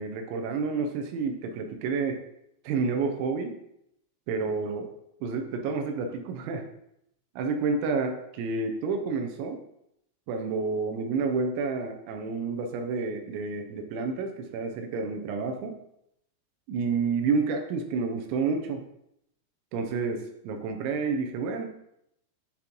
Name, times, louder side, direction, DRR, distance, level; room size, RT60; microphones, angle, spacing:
voice 1, 0.0-2.2 2.6-3.5 4.3-4.9 5.2-6.6 7.4-9.6 10.3-15.7 16.7-18.8 19.7-21.7, right 4 dB, 80° right, 5 dB, 2.8 m, -29 dB
10.5 x 3.7 x 3.0 m, 0.77 s
omnidirectional pair, 5.7 m